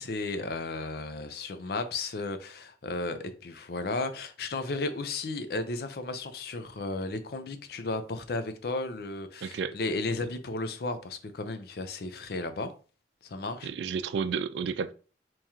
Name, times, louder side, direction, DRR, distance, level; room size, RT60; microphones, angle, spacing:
voice 1, 0.0-12.7 13.2-13.7, left 3 dB, 60° left, 0.5 m, -34 dB
voice 2, 9.4-9.7 13.6-14.9, right 6 dB, 80° right, 0.3 m, -31 dB
3.0 x 2.9 x 3.5 m
head